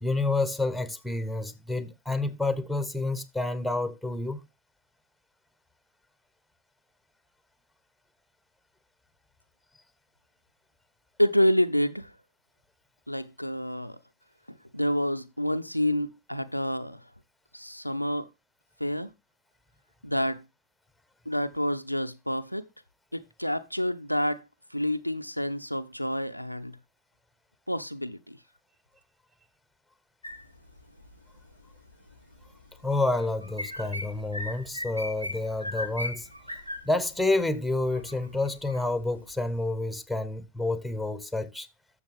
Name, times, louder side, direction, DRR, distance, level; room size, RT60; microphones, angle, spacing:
voice 1, 0.0-4.4 32.8-36.3 36.8-41.7, left 2 dB, ahead, 1.2 m, -29 dB
voice 2, 11.2-12.1 13.1-14.0 14.7-17.0 17.5-18.3 18.8-19.1 20.0-20.4 21.3-22.6 23.1-24.4 24.7-26.8 27.7-28.4, left 1 dB, 90° left, 0.5 m, -28 dB
sound 1, 30.2-39.6, left 1 dB, 90° right, 1.2 m, -40 dB
11.5 x 6.9 x 3.5 m
figure-of-eight pair, 90°, 0 cm